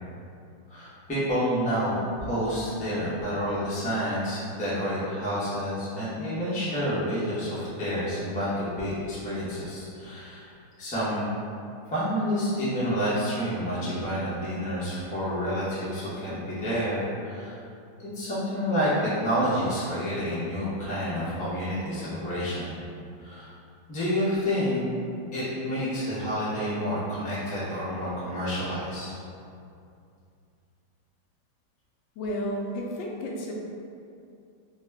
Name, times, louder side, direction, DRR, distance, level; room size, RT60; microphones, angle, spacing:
voice 1, 0.7-10.5 10.8-11.4 11.9-17.6 18.0-22.8 23.2-23.5 23.9-24.9 25.3-29.2, equal, 10° left, -11 dB, 0.4 m, -29 dB
voice 2, 32.2-33.5, equal, 85° left, -1 dB, 1.3 m, -32 dB
3.9 x 2.2 x 3.4 m, 2.5 s
omnidirectional pair, 2.0 m